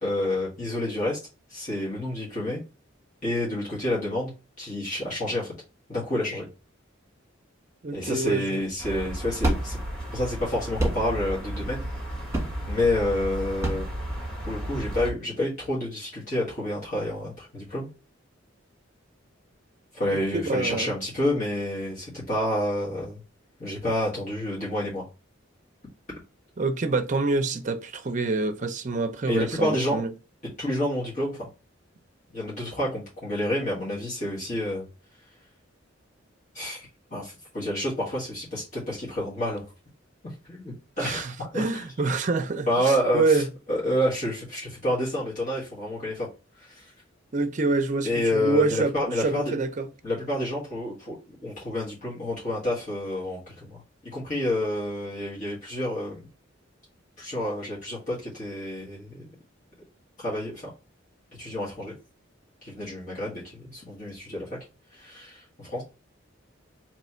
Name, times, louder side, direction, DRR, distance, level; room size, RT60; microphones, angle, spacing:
voice 1, 0.0-1.2 1.5-2.6 3.2-4.3 4.6-5.5 5.9-6.5 7.9-9.8 10.1-11.9 12.7-13.9 14.5-17.9 19.9-23.2 23.6-25.0 29.3-30.0 30.6-31.5 32.3-34.8 36.5-39.6 40.2-41.8 42.7-43.4 43.7-46.3 46.6-46.9 48.0-49.6 50.0-51.2 51.4-56.3 57.2-59.3 60.2-60.7 61.4-62.0 62.6-64.5 64.9-65.8, left 1 dB, 40° left, 1.7 m, -29 dB
voice 2, 7.8-8.6 20.1-20.9 26.6-30.1 41.0-43.5 47.3-49.9, right 3 dB, 40° right, 0.5 m, -26 dB
sound 1, 8.6-14.8, right 1 dB, 15° right, 1.5 m, -31 dB
sound 2, 8.8-15.1, equal, 5° left, 1.5 m, -34 dB
3.3 x 3.1 x 4.3 m
head